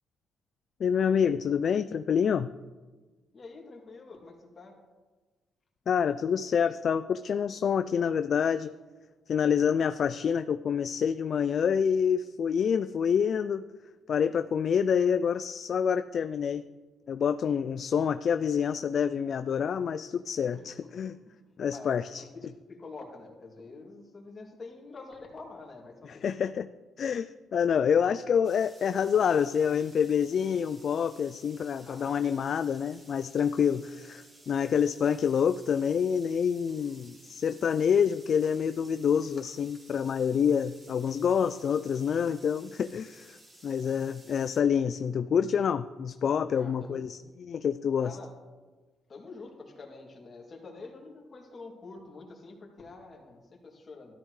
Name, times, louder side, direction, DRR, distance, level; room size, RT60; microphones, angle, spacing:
voice 1, 0.8-2.5 5.9-8.7 9.3-13.7 14.1-16.6 17.1-21.2 21.6-22.2 26.1-26.7 27.0-48.2, left 7 dB, 55° left, 12 dB, 0.3 m, -27 dB
voice 2, 3.3-4.8 20.5-21.4 21.7-26.3 31.8-32.2 36.7-36.9 46.5-47.0 48.0-48.3 49.1-54.1, left 3 dB, 40° left, -1 dB, 2.6 m, -47 dB
sound 1, 28.4-44.6, right 1 dB, 30° right, 2.3 m, -56 dB
13.0 x 12.5 x 3.2 m, 1.3 s
cardioid pair, 90°, 0 cm